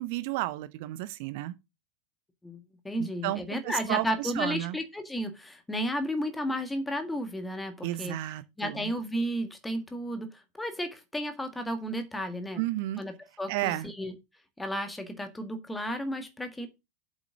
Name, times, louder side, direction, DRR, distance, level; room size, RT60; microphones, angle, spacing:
voice 1, 0.0-1.5 3.0-4.8 7.8-8.9 12.6-13.0 13.5-13.9, right 17 dB, 50° right, 0.7 m, -32 dB
voice 2, 2.4-8.2 8.6-12.7 13.0-14.1 14.6-16.7, equal, 5° left, 1.8 m, -33 dB
7.7 x 6.3 x 6.1 m
figure-of-eight pair, 90°, 0 cm